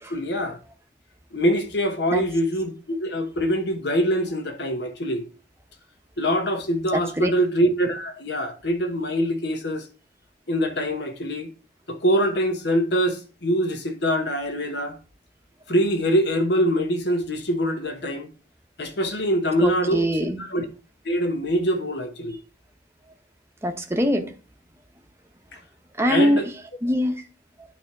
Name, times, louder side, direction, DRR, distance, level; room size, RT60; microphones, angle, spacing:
voice 1, 0.1-0.6 1.3-5.2 6.2-9.9 10.5-11.5 11.9-15.0 15.7-18.3 18.8-20.7 21.0-22.4 26.1-26.5, equal, 60° left, 1.2 m, -24 dB
voice 2, 6.9-7.3 19.6-20.4 23.6-24.3 26.0-26.4 26.8-27.2, equal, 15° right, 0.9 m, -23 dB
9.2 x 3.5 x 5.9 m
head